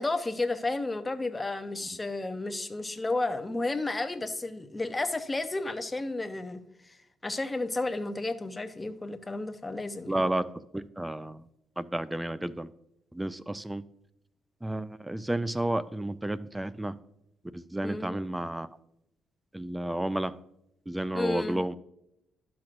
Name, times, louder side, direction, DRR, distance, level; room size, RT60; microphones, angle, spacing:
voice 1, 0.0-7.0 7.2-10.1 17.8-18.2 21.1-21.6, left 2 dB, 20° left, 8 dB, 0.7 m, -32 dB
voice 2, 10.1-10.5 10.7-11.5 11.8-12.7 13.1-13.8 14.6-17.0 17.5-18.7 19.5-20.3 20.9-21.7, right 1 dB, 10° right, 16 dB, 0.4 m, -31 dB
12.0 x 6.0 x 2.5 m, 0.80 s
cardioid pair, 90°, 0 cm